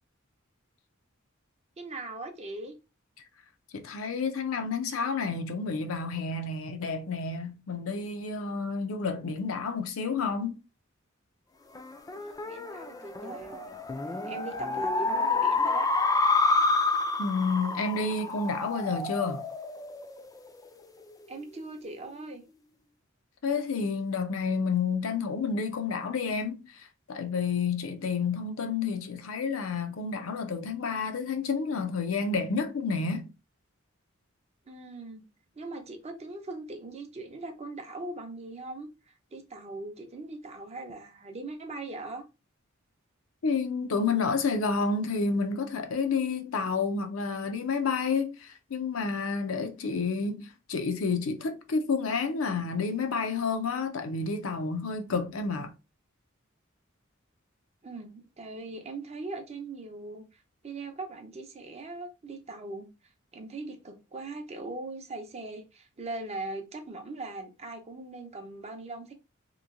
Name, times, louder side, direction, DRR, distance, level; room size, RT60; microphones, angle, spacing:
voice 1, 1.8-2.7 12.1-13.8 14.2-15.9 21.3-22.4 34.7-35.2 35.6-42.2 57.8-62.9 63.3-69.1, right 2 dB, 30° right, 0.6 m, -40 dB
voice 2, 3.7-10.6 17.2-19.4 23.4-33.3 43.4-55.7, left 4 dB, 80° left, 0.5 m, -30 dB
sound 1, 11.7-20.6, left 3 dB, 15° left, 0.3 m, -29 dB
3.0 x 2.7 x 2.5 m
head